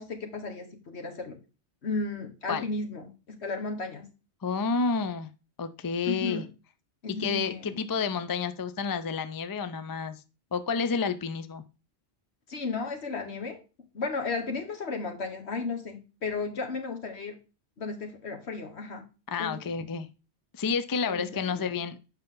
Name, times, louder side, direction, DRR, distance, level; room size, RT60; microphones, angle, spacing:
voice 1, 0.0-1.4 1.8-4.1 6.0-6.5 7.0-7.8 12.5-13.6 13.9-17.4 17.8-19.0 19.4-19.8 21.1-21.6, left 3 dB, 75° left, 1.7 m, -34 dB
voice 2, 4.4-5.3 5.6-6.4 7.2-10.2 10.5-11.6 19.3-20.1 20.5-22.0, left 5 dB, 30° left, 0.4 m, -30 dB
7.7 x 5.6 x 3.8 m
omnidirectional pair, 1.1 m